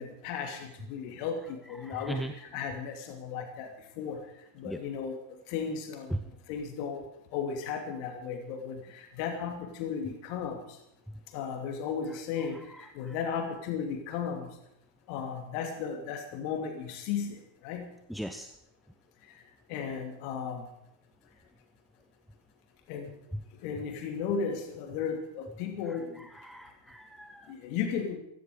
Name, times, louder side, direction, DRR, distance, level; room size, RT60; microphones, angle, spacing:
voice 1, 0.0-4.2 4.5-5.2 5.5-6.1 6.5-7.0 7.3-10.6 11.3-14.5 15.1-17.9 19.3-19.4 19.7-20.7 22.9-23.2 23.6-26.3 27.5-28.2, left 6 dB, 45° left, 4 dB, 2.7 m, -35 dB
voice 2, 1.8-2.3 2.6-2.7 4.6-4.8 6.1-6.2 13.1-13.2 18.1-18.5 26.4-27.5, right 1 dB, ahead, 8 dB, 0.8 m, -37 dB
16.0 x 14.5 x 5.1 m, 0.81 s
figure-of-eight pair, 90°, 0 cm